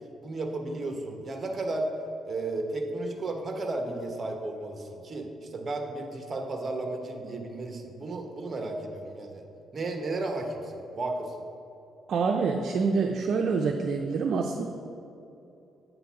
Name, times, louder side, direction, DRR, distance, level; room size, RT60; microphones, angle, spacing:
voice 1, 0.2-1.9 2.2-9.4 9.7-11.3, right 2 dB, 35° right, 3 dB, 1.0 m, -33 dB
voice 2, 12.1-14.6, right 4 dB, 60° right, 3 dB, 0.5 m, -26 dB
8.2 x 3.9 x 5.7 m, 2.8 s
cardioid pair, 90°, 0 cm